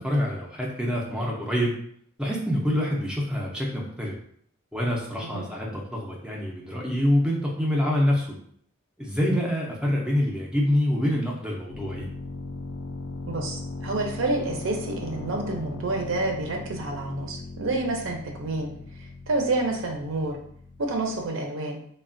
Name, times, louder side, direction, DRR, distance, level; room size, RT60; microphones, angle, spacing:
voice 1, 0.0-1.7 2.2-4.1 4.7-8.3 9.0-12.1, left 1 dB, 5° right, -3 dB, 0.4 m, -26 dB
sound 1, 11.7-21.3, left 3 dB, 75° left, 0.4 m, -38 dB
voice 2, 13.3-18.7 19.3-20.4 20.8-21.8, right 2 dB, 70° right, 2 dB, 0.5 m, -28 dB
3.2 x 2.1 x 2.5 m, 0.64 s
head